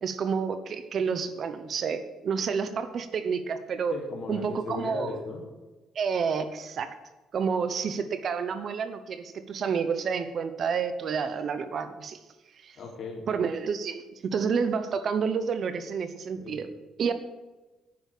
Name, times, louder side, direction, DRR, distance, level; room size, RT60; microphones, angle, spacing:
voice 1, 0.0-4.0 4.3-5.1 5.9-6.9 7.3-12.2 12.6-12.8 13.3-16.7 17.0-17.1, right 6 dB, 50° right, 11 dB, 1.0 m, -29 dB
voice 2, 3.9-5.4 12.8-13.3 16.4-16.6, left 3 dB, 50° left, -1 dB, 3.9 m, -36 dB
9.7 x 6.5 x 8.4 m, 1.1 s
cardioid pair, 105°, 0 cm